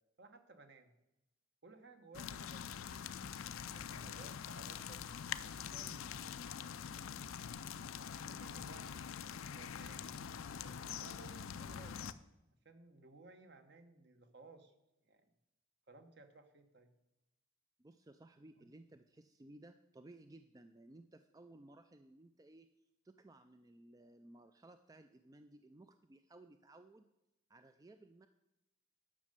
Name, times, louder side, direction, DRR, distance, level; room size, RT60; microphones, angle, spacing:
voice 1, 0.2-0.9 1.6-3.2 3.7-5.1 5.4-6.3 8.1-9.1 9.4-10.2 10.6-12.1 12.6-14.7 15.0-15.3 15.9-16.9 18.6-18.7, right 3 dB, 55° right, 8 dB, 1.1 m, -59 dB
sound 1, 2.1-12.1, left 8 dB, 85° left, 0.5 m, -45 dB
voice 2, 17.8-22.7 23.0-27.1 27.5-28.3, right 2 dB, 15° right, 9 dB, 0.3 m, -59 dB
10.0 x 6.5 x 6.7 m, 0.92 s
head